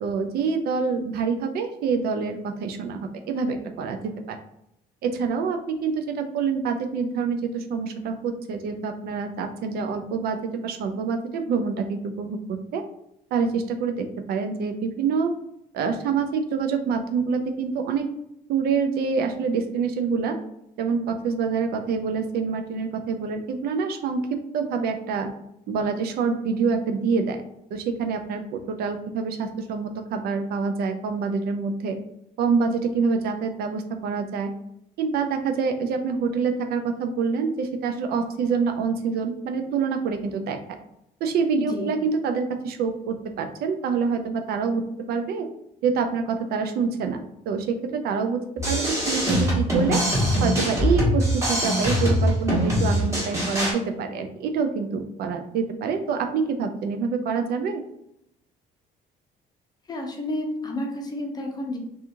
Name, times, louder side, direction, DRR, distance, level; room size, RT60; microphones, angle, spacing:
voice 1, 0.0-4.4 5.0-12.8 13.3-15.3 15.7-18.1 18.5-20.4 20.8-24.2 24.5-25.3 25.7-27.4 27.7-32.0 32.4-34.5 35.0-40.6 41.2-45.5 45.8-48.4 48.7-50.0 50.4-57.8, right 5 dB, 65° right, 6 dB, 0.4 m, -26 dB
voice 2, 41.6-41.9 59.9-61.8, left 1 dB, 25° left, 1 dB, 0.6 m, -30 dB
sound 1, 48.6-53.7, equal, 15° right, 1.2 m, -23 dB
2.8 x 2.4 x 2.5 m, 0.79 s
cardioid pair, 110°, 17 cm